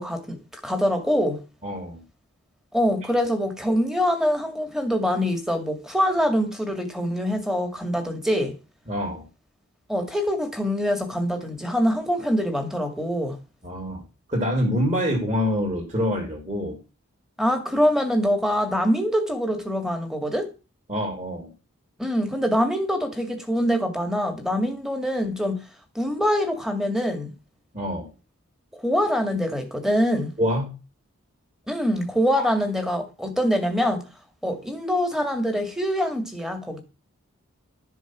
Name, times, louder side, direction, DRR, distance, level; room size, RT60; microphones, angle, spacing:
voice 1, 0.0-1.4 2.7-8.5 9.9-13.4 17.4-20.5 22.0-25.6 25.9-27.3 28.7-30.3 31.7-34.0 34.4-36.8, equal, ahead, 2.2 m, -24 dB
voice 2, 1.6-2.0 8.9-9.3 13.6-14.0 14.3-16.8 20.9-21.5 27.7-28.1 30.4-30.7 32.4-32.5, equal, 30° right, 3.5 m, -26 dB
12.5 x 7.2 x 6.1 m
head